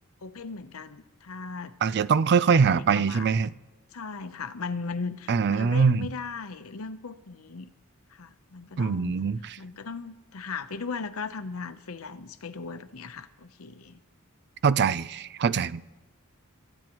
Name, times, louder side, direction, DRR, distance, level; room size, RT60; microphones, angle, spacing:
voice 1, 0.2-2.1 2.5-3.3 3.9-7.7 8.1-9.1 9.6-14.0, left 4 dB, 75° left, 10 dB, 0.8 m, -38 dB
voice 2, 1.8-3.5 5.3-6.1 8.8-9.4 14.6-15.8, right 5 dB, 50° right, 17 dB, 0.4 m, -23 dB
28.5 x 14.0 x 3.0 m, 1.2 s
head